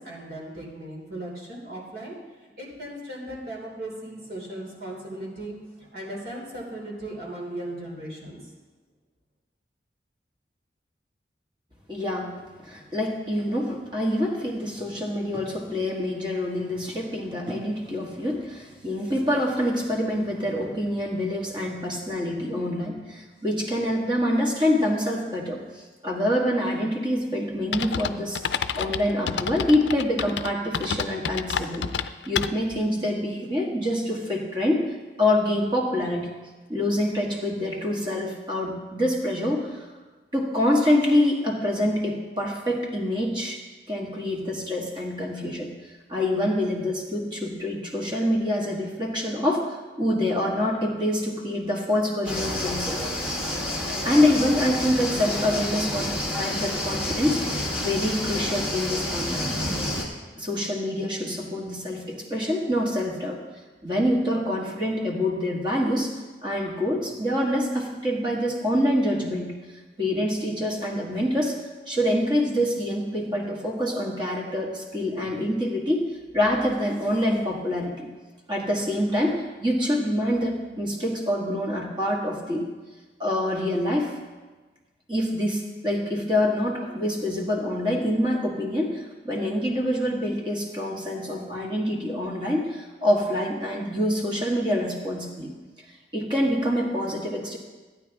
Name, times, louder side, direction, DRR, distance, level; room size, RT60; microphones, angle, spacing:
voice 1, 0.0-2.2 2.6-8.4, right 1 dB, 60° right, -2 dB, 3.0 m, -37 dB
voice 2, 11.9-12.3 12.6-31.9 32.3-34.8 35.2-36.3 36.7-39.8 40.3-43.6 43.9-45.7 46.1-49.7 50.0-53.0 54.0-59.5 60.4-63.4 63.8-66.1 66.4-69.5 70.0-71.5 71.9-76.1 76.3-78.1 78.5-82.7 83.2-84.1 85.1-95.5 96.1-97.6, left 1 dB, 25° right, -2 dB, 1.6 m, -26 dB
sound 1, 27.7-32.8, left 7 dB, 85° left, 0.4 m, -29 dB
sound 2, 52.2-60.0, left 1 dB, 5° right, 1.9 m, -29 dB
14.5 x 9.3 x 3.5 m, 1.3 s
head